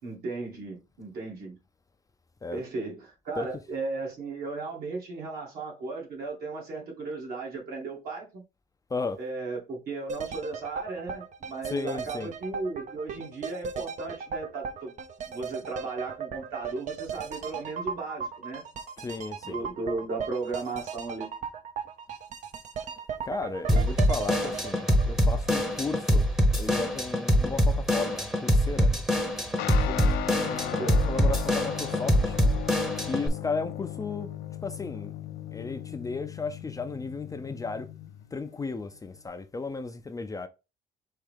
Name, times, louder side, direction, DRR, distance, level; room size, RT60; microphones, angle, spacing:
voice 1, 0.0-1.6 2.5-8.4 9.2-14.9 15.2-18.6 19.4-21.3 30.8-31.0, right 3 dB, 65° right, 2.4 m, -36 dB
sound 1, 10.1-26.0 26.3-26.4, right 6 dB, 45° right, 0.6 m, -37 dB
voice 2, 11.7-12.3 19.0-19.6 23.2-26.3 26.6-28.9 29.8-32.4 33.1-34.3 34.6-35.1 35.5-37.9 38.3-40.5, left 4 dB, 20° left, 0.5 m, -34 dB
Drum kit / Drum, 23.7-33.3, equal, ahead, 0.9 m, -24 dB
Guitar, 29.6-39.3, left 12 dB, 80° left, 0.6 m, -37 dB
4.6 x 3.2 x 3.5 m
cardioid pair, 110°, 17 cm